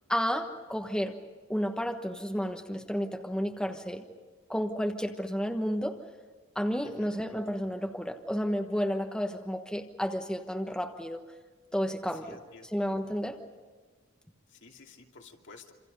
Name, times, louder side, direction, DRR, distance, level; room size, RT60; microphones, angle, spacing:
voice 1, 0.1-1.2 1.5-4.0 4.5-6.0 6.5-11.2 11.7-13.4, equal, 5° left, 4 dB, 1.3 m, -31 dB
voice 2, 12.2-12.7 14.5-15.7, left 4 dB, 60° left, 1 dB, 2.7 m, -52 dB
27.5 x 27.0 x 5.4 m, 1.4 s
head